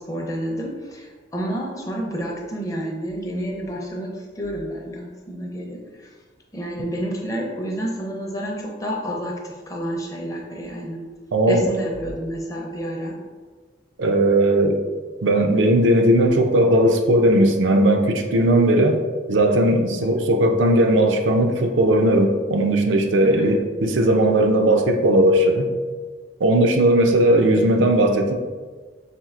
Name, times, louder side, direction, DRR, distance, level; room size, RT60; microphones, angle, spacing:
voice 1, 0.0-6.1 6.5-11.0 11.5-13.2 23.3-23.5, right 1 dB, 15° left, -1 dB, 0.5 m, -29 dB
voice 2, 11.3-11.6 14.0-14.8 15.2-19.0 19.3-25.7 26.4-28.3, right 1 dB, 75° right, 4 dB, 0.4 m, -17 dB
4.3 x 3.4 x 2.4 m, 1.4 s
head